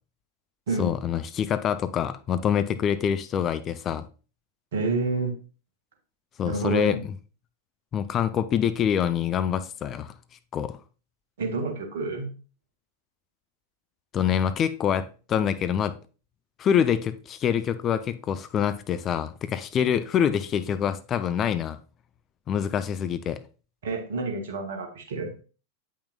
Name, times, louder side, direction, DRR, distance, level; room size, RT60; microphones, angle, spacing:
voice 1, 0.8-4.1 6.4-7.0 7.9-10.1 10.5-10.8 14.1-15.9 16.6-21.8 22.5-23.4, left 8 dB, 30° left, 0.5 m, -25 dB
voice 2, 4.7-5.3 6.4-7.0 11.4-12.3 23.8-25.4, right 3 dB, 60° right, 1.5 m, -28 dB
8.6 x 5.6 x 2.3 m
figure-of-eight pair, 90°, 0 cm